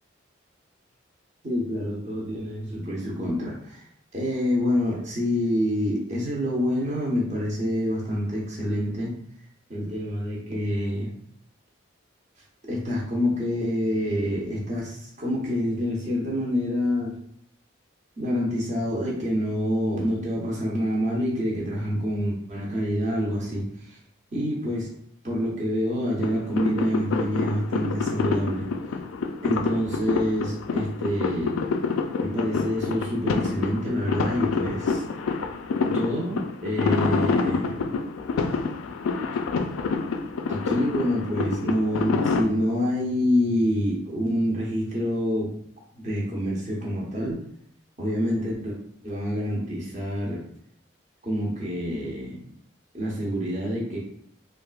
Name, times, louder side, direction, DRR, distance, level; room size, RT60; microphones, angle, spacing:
voice 1, 1.4-3.8 4.1-9.1 9.7-11.1 12.7-17.1 18.2-24.0 24.3-24.9 25.2-28.7 29.4-31.6 32.2-35.0 35.8-37.8 40.5-45.5 46.0-47.4 48.0-48.8 49.0-50.4 51.2-52.4 52.9-54.0, equal, 35° right, -4 dB, 0.9 m, -27 dB
sound 1, 26.2-42.4, left 4 dB, 90° left, 0.3 m, -27 dB
3.4 x 2.4 x 2.4 m, 0.66 s
head